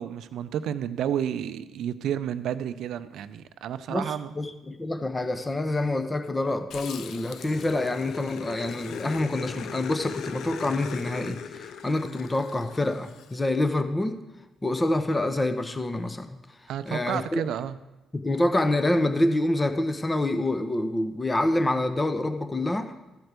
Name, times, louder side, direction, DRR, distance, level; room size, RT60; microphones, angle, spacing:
voice 1, 0.0-4.3 16.7-17.8, right 9 dB, 80° right, 11 dB, 0.5 m, -31 dB
voice 2, 3.9-14.2 14.6-16.4 16.8-17.5 18.1-22.9, left 1 dB, 20° left, 9 dB, 0.8 m, -27 dB
Growling, 6.7-13.4, left 7 dB, 75° left, 0.6 m, -39 dB
13.0 x 4.4 x 8.2 m, 1.0 s
cardioid pair, 90°, 0 cm